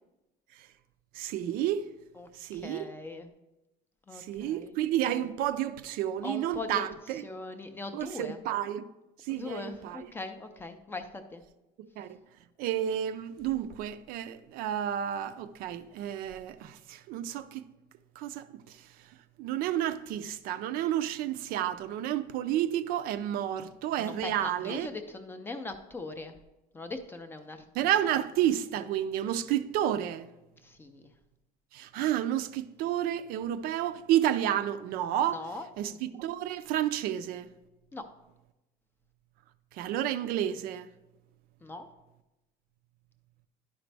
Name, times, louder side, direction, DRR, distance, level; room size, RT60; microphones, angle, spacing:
voice 1, 1.1-1.9 2.3-2.9 4.1-7.2 7.9-8.8 9.2-10.1 11.8-12.2 12.6-17.6 18.2-24.9 27.7-30.3 31.7-35.4 35.8-37.5 39.7-40.9, right 11 dB, 60° right, 0.4 m, -31 dB
voice 2, 2.2-3.3 4.1-4.8 6.2-6.8 7.2-8.4 9.3-11.4 24.0-26.3 26.7-27.6 30.6-31.1 35.3-35.7 37.9-38.0 41.6-41.9, left 3 dB, 15° left, 0.4 m, -40 dB
11.0 x 5.0 x 3.3 m
cardioid pair, 170°, 17 cm